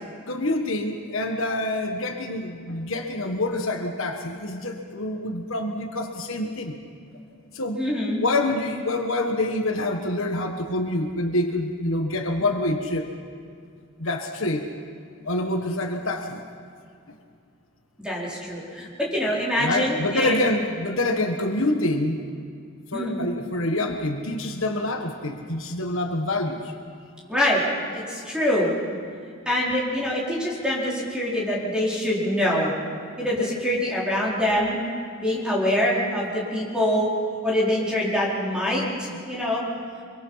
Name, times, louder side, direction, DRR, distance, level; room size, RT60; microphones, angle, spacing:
voice 1, 0.3-6.7 7.5-7.8 8.2-13.1 14.0-14.7 15.2-16.4 19.6-22.2 22.9-26.7 31.6-31.7 39.1-39.2, left 2 dB, 65° left, 4 dB, 1.5 m, -26 dB
voice 2, 7.8-8.2 18.0-20.3 22.9-23.2 27.3-27.6 27.9-28.7 29.5-32.7 33.2-34.8 35.2-37.1 37.4-39.6, left 1 dB, 5° right, -6 dB, 4.7 m, -24 dB
25.0 x 23.5 x 5.8 m, 2.3 s
head